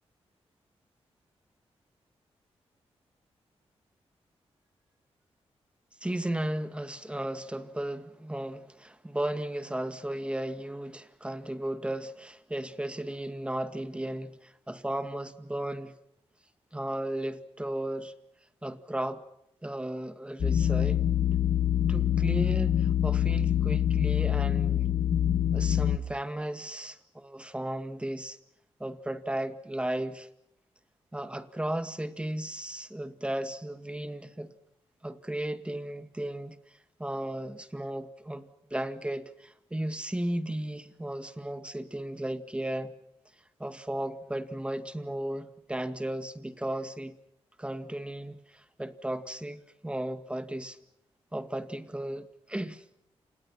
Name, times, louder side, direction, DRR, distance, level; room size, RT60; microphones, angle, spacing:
voice 1, 6.0-15.9 16.7-18.1 18.6-19.2 19.6-21.1 21.9-24.9 25.5-28.4 28.8-30.3 31.1-34.5 35.0-36.6 37.0-42.9 43.6-47.2 47.6-50.8 51.3-52.8, right 1 dB, 10° right, 2.0 m, -35 dB
sound 1, 20.4-26.0, left 10 dB, 65° left, 1.6 m, -25 dB
29.5 x 28.0 x 5.9 m
cardioid pair, 100°, 11 cm